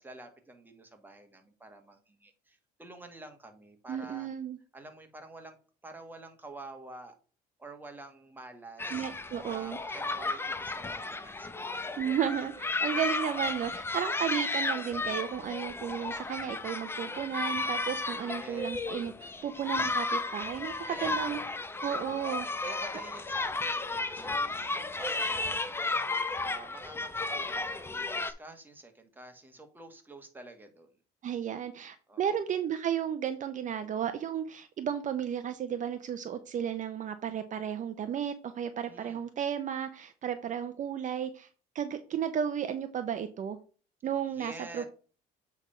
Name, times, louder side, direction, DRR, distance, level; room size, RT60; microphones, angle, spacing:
voice 1, 0.0-4.3 4.7-5.6 5.8-7.2 7.6-9.1 9.4-11.8 18.3-18.8 20.9-21.2 21.9-22.2 22.6-30.9 32.1-32.4 38.8-39.2 44.3-44.8, right 2 dB, 10° right, 4 dB, 1.6 m, -49 dB
voice 2, 3.9-4.6 8.9-9.8 12.0-21.4 21.8-22.5 31.2-41.5 41.7-43.6 44.0-44.8, right 9 dB, 50° right, 9 dB, 0.7 m, -33 dB
sound 1, 8.8-28.3, left 3 dB, 15° left, 0.7 m, -34 dB
8.1 x 3.5 x 5.5 m, 0.39 s
cardioid pair, 110°, 17 cm